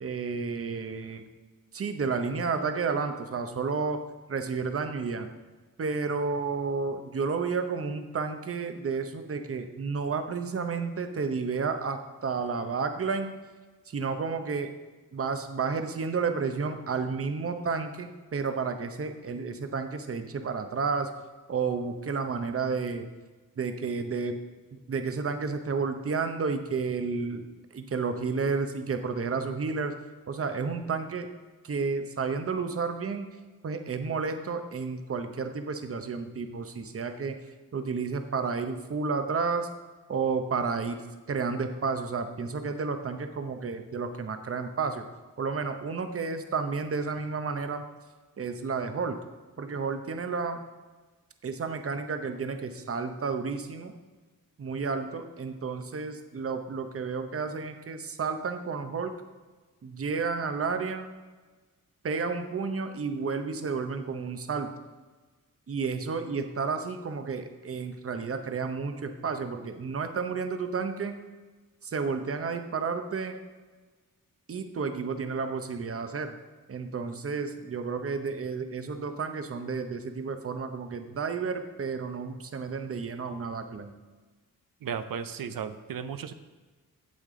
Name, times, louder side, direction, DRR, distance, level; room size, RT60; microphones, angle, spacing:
voice 1, 0.0-1.2 1.7-4.0 4.3-5.3 5.8-13.3 13.9-14.7 15.1-21.1 21.5-23.1 23.6-24.4 24.9-27.5 27.7-29.9 30.3-31.3 31.6-33.3 33.6-37.4 37.7-39.7 40.1-45.0 45.4-47.8 48.4-49.2 49.6-50.6 51.4-53.9 54.6-59.1 59.8-61.1 62.0-64.7 65.7-71.2 71.8-73.4 74.5-76.3 76.7-83.9, right 5 dB, 40° right, 7 dB, 0.7 m, -31 dB
voice 2, 84.8-86.3, right 7 dB, 75° right, 11 dB, 0.6 m, -35 dB
8.6 x 8.4 x 3.7 m, 1.3 s
wide cardioid pair, 160°, 34 cm